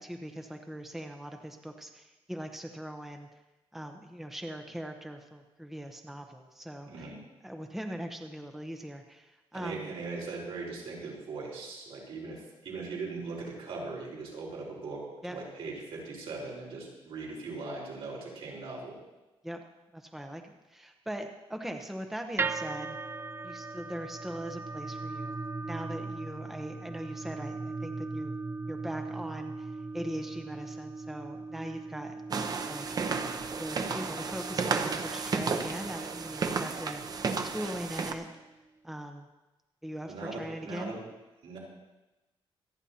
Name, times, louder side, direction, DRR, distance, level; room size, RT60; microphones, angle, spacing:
voice 1, 0.0-3.4 3.7-7.1 7.4-9.9 15.2-15.4 19.4-19.6 19.9-23.0 23.4-28.3 28.7-32.1 32.7-32.9 33.5-38.3 38.8-39.3 39.8-40.9, equal, 5° right, 4 dB, 0.8 m, -40 dB
voice 2, 6.8-7.2 9.5-19.0 40.0-41.0 41.4-41.6, right 3 dB, 75° right, -3 dB, 4.5 m, -40 dB
sound 1, 22.4-38.6, right 3 dB, 25° right, 0.5 m, -39 dB
sound 2, 32.3-38.1, right 5 dB, 40° right, 0.8 m, -33 dB
26.0 x 9.9 x 2.9 m, 1.1 s
cardioid pair, 135°, 10 cm